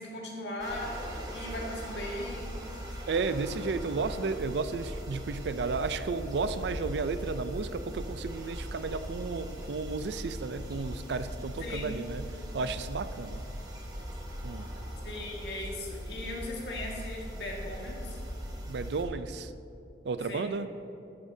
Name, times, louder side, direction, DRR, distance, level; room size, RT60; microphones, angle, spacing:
voice 1, 0.0-3.0 11.6-12.0 15.0-18.2 20.3-20.5, left 1 dB, 75° left, -2 dB, 1.8 m, -38 dB
sound 1, 0.6-19.0, equal, 20° right, 1.2 m, -40 dB
voice 2, 3.1-12.2 12.5-13.4 14.4-14.7 18.7-19.5 20.0-20.7, right 4 dB, 70° right, 12 dB, 0.4 m, -33 dB
13.5 x 8.7 x 2.7 m, 2.8 s
head